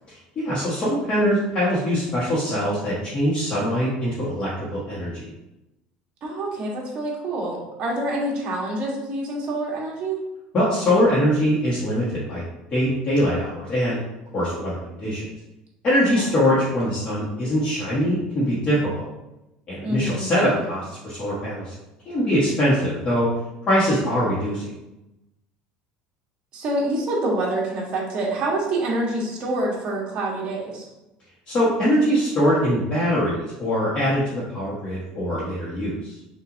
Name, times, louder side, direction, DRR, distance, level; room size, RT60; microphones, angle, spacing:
voice 1, 0.1-5.3 10.5-12.4 12.7-14.0 14.3-15.2 15.8-19.1 19.7-21.7 22.0-23.3 23.7-24.7 31.5-36.1, equal, 35° left, -10 dB, 1.3 m, -22 dB
voice 2, 6.2-10.2 16.0-16.3 19.8-20.2 26.5-30.8, right 1 dB, 40° right, -3 dB, 1.3 m, -26 dB
5.7 x 2.7 x 2.7 m, 0.94 s
cardioid pair, 145°, 3 cm